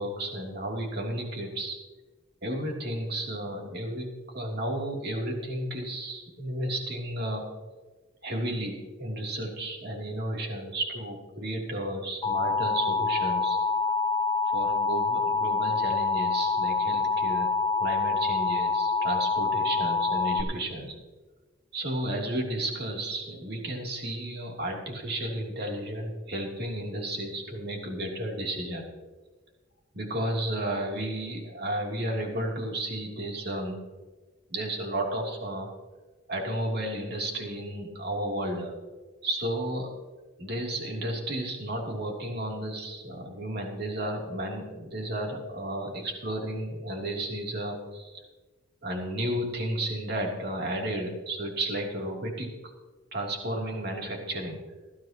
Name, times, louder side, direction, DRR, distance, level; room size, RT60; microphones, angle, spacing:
voice 1, 0.0-1.8 2.4-4.1 4.3-7.5 8.2-13.6 14.5-17.5 17.8-20.9 21.7-28.8 29.9-33.9 34.5-35.7 36.3-38.7 39.2-39.9 40.4-48.2 48.8-52.5 53.1-54.6, right 1 dB, 50° right, 0 dB, 3.2 m, -33 dB
Alarm, 12.2-20.4, left 4 dB, 20° left, 1.8 m, -26 dB
19.5 x 14.0 x 3.0 m, 1.3 s
head